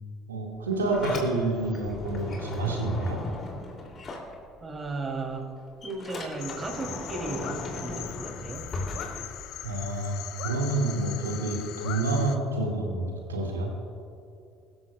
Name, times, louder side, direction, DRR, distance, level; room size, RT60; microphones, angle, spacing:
voice 1, 0.3-3.2 9.6-13.7, right 2 dB, 85° right, 0 dB, 2.1 m, -28 dB
Sliding door, 0.5-4.9 5.2-9.9, left 2 dB, 40° left, 3.0 m, -38 dB
voice 2, 4.6-5.5 5.8-8.7, right 3 dB, 30° right, 1 dB, 3.2 m, -35 dB
sound 1, 6.4-12.4, left 12 dB, 60° left, 0.8 m, -40 dB
22.5 x 13.5 x 2.4 m, 2.6 s
figure-of-eight pair, 60°, 0 cm